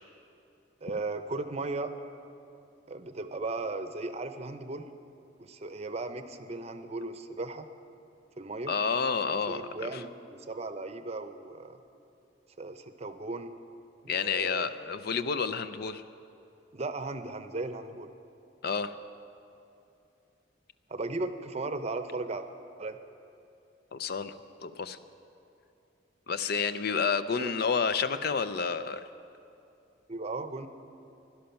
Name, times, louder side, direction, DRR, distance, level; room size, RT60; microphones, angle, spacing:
voice 1, 0.8-1.9 2.9-4.9 5.4-7.7 8.4-8.7 9.3-11.8 12.6-13.5 14.0-14.7 16.7-18.1 20.9-22.5 22.8-23.0 27.3-27.5 30.1-30.7, right 3 dB, 35° right, 9 dB, 0.7 m, -36 dB
voice 2, 8.7-10.0 14.1-16.0 18.6-18.9 23.9-24.3 24.6-25.0 26.3-29.0, left 5 dB, 60° left, 12 dB, 0.5 m, -30 dB
17.0 x 11.5 x 5.8 m, 2.7 s
head